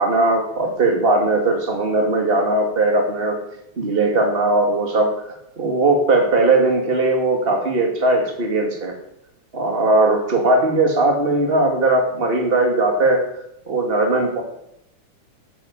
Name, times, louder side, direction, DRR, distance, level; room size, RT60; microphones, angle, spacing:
voice 1, 0.0-3.4 3.8-5.1 5.6-9.0 9.5-13.2 13.7-14.4, right 2 dB, 20° right, 3 dB, 2.3 m, -18 dB
13.5 x 10.0 x 8.4 m, 0.82 s
omnidirectional pair, 3.7 m